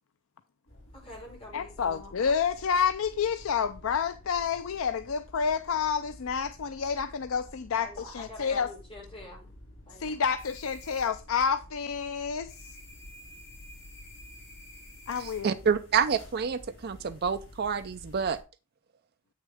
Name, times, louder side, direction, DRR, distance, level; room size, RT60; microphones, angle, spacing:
sound 1, 0.7-18.4, left 1 dB, 50° left, 4.3 m, -50 dB
voice 1, 0.9-2.1 7.8-9.5 9.8-10.2, left 1 dB, 25° left, 4.7 m, -46 dB
voice 2, 1.5-8.7 10.0-12.7 15.1-15.5, left 6 dB, 80° left, 0.5 m, -29 dB
voice 3, 15.2-18.4, right 6 dB, 50° right, 0.5 m, -28 dB
8.4 x 6.5 x 3.5 m
head